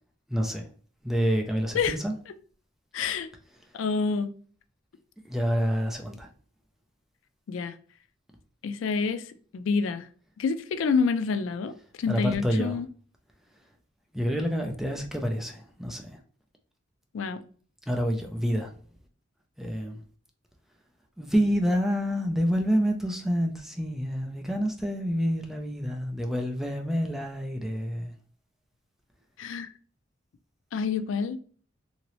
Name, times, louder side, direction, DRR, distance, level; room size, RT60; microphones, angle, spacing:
voice 1, 0.3-0.7 1.0-2.1 5.2-6.3 12.1-12.8 14.1-16.1 17.9-18.7 19.6-20.0 21.2-28.1, equal, ahead, 0.4 m, -28 dB
voice 2, 2.9-3.3 3.7-4.3 7.5-7.7 8.6-9.3 9.5-10.1 10.4-12.9 17.1-17.4 29.4-29.7 30.7-31.4, left 5 dB, 75° left, 0.3 m, -27 dB
2.9 x 2.8 x 3.0 m
head